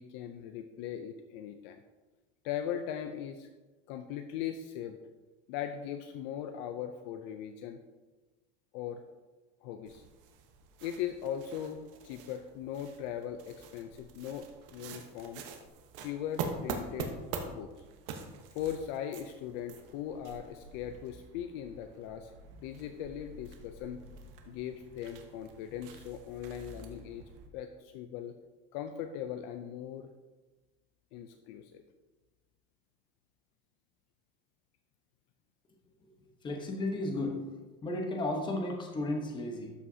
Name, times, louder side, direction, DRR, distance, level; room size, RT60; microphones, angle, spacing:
voice 1, 0.0-1.8 2.4-3.5 3.9-5.0 5.5-7.8 8.7-9.0 9.6-10.0 10.8-14.5 14.7-15.4 16.0-17.2 17.4-17.7 18.5-24.0 24.5-28.4 28.7-30.1 31.1-31.8, left 9 dB, 50° left, 7 dB, 0.5 m, -39 dB
sound 1, 9.8-27.5, right 5 dB, 65° right, 1.1 m, -45 dB
voice 2, 36.0-37.4 37.8-39.7, left 2 dB, 15° left, 1 dB, 0.9 m, -34 dB
12.5 x 5.6 x 2.7 m, 1.2 s
cardioid pair, 170°, 29 cm